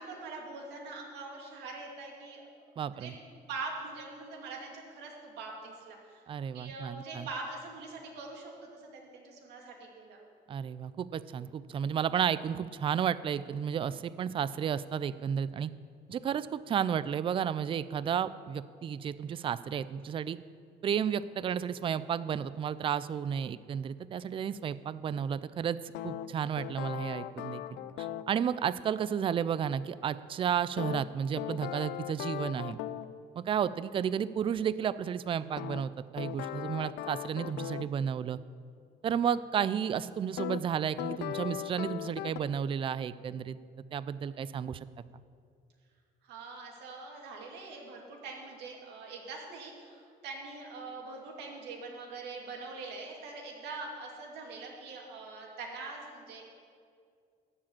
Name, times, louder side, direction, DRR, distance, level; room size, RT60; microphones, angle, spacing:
voice 1, 0.0-2.4 2.9-3.2 3.5-6.2 6.5-10.2 46.2-56.5, right 3 dB, 80° right, 0 dB, 2.3 m, -43 dB
voice 2, 2.8-3.1 6.3-7.3 10.5-15.7 16.1-20.4 20.8-25.8 26.0-27.6 28.0-32.8 33.4-38.4 39.0-43.6 43.9-44.8, right 8 dB, 30° right, 16 dB, 0.3 m, -32 dB
sound 1, 25.9-28.3 30.8-33.1 35.6-37.9 40.4-40.6 41.0-42.4, left 13 dB, 80° left, 0.4 m, -38 dB
13.5 x 5.0 x 8.7 m, 2.3 s
cardioid pair, 110°, 17 cm